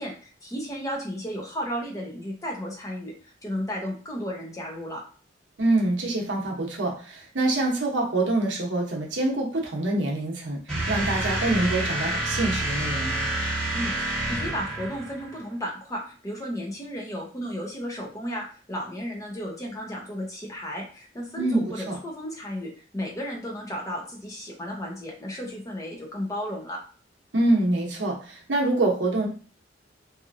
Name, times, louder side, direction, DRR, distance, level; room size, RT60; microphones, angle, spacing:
voice 1, 0.0-3.1 3.4-5.0 13.7-26.8, equal, 15° left, -2 dB, 0.7 m, -34 dB
voice 2, 5.6-13.3 21.4-22.0 27.3-29.3, right 2 dB, 70° right, -1 dB, 0.8 m, -25 dB
sound 1, 10.7-15.4, right 1 dB, ahead, 1.2 m, -28 dB
2.8 x 2.5 x 2.5 m, 0.39 s
head